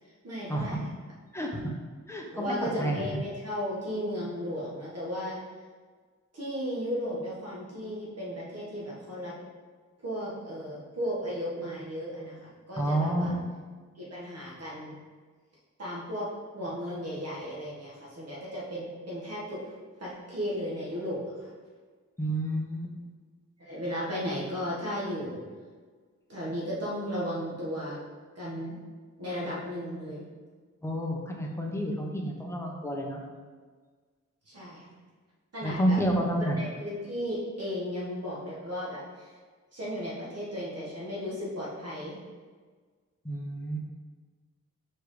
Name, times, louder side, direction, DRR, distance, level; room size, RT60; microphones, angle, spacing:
voice 1, 0.2-0.9 2.3-5.4 6.3-9.3 10.0-13.3 13.9-15.0 15.8-16.3 16.5-19.6 20.0-21.5 23.6-25.4 26.3-28.0 28.3-28.8 29.2-30.2 34.4-34.9 35.5-36.0 36.6-39.3 39.7-42.2, equal, 55° right, -6 dB, 1.7 m, -35 dB
voice 2, 2.1-3.0 12.8-13.4 22.2-22.9 30.8-33.2 35.6-36.6 43.2-43.8, right 1 dB, 10° left, 0 dB, 1.0 m, -29 dB
4.8 x 4.5 x 4.9 m, 1.5 s
wide cardioid pair, 100°, 30 cm